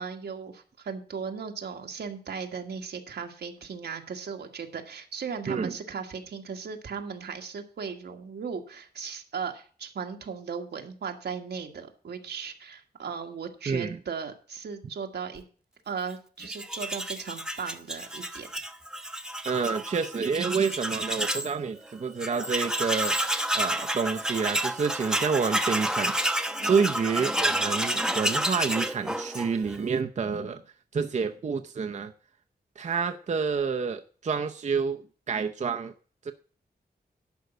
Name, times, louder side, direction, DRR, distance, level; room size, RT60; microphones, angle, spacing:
voice 1, 0.0-15.4 15.8-18.5 26.6-26.9, right 6 dB, 85° right, 4 dB, 1.6 m, -37 dB
voice 2, 13.7-14.0 19.5-23.2 23.5-26.1 26.7-30.6 30.9-32.1 32.8-35.0 35.3-35.9 36.2-36.3, right 5 dB, 45° right, 6 dB, 0.6 m, -28 dB
Tools, 16.4-21.5 21.9-22.0 22.2-29.8, right 1 dB, 5° right, 0.8 m, -30 dB
11.5 x 5.3 x 7.9 m, 0.41 s
wide cardioid pair, 125°, 17 cm